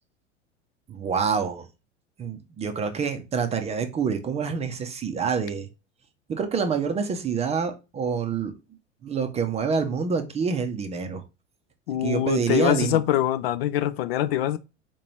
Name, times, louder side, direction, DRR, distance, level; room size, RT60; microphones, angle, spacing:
voice 1, 0.9-1.7 2.2-5.7 6.3-8.6 9.0-11.2 12.0-13.0, right 6 dB, 20° right, 0.5 m, -27 dB
voice 2, 11.9-14.6, left 13 dB, 55° left, 0.5 m, -24 dB
4.3 x 2.9 x 3.0 m
figure-of-eight pair, 85°, 36 cm